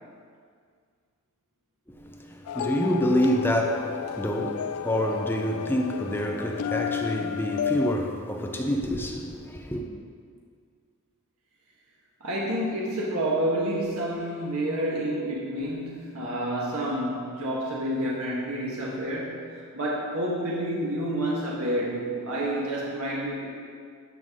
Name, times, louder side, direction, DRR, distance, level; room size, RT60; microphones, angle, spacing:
voice 1, 1.9-9.8, equal, 10° left, 0.6 m, -27 dB
sound 1, 2.5-8.0, left 8 dB, 80° left, 0.3 m, -32 dB
voice 2, 12.2-23.5, right 1 dB, 80° right, 1.5 m, -29 dB
12.5 x 5.6 x 3.7 m
head